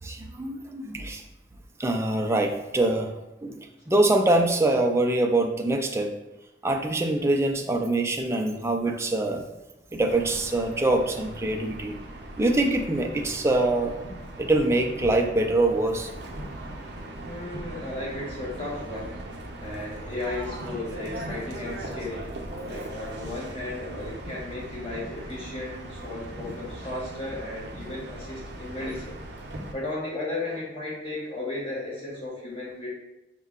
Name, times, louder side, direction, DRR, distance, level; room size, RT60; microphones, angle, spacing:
voice 1, 0.0-1.2 1.8-3.1 3.4-3.6 3.9-6.1 6.6-9.4 9.9-12.0 12.4-14.0 14.4-16.1, right 2 dB, 15° right, 3 dB, 0.3 m, -24 dB
sound 1, 10.1-29.7, right 1 dB, 65° right, 0.6 m, -39 dB
voice 2, 17.2-19.2 19.6-22.3 22.6-29.1 29.7-32.9, left 2 dB, 30° left, -6 dB, 1.0 m, -35 dB
5.4 x 2.2 x 3.6 m, 0.97 s
head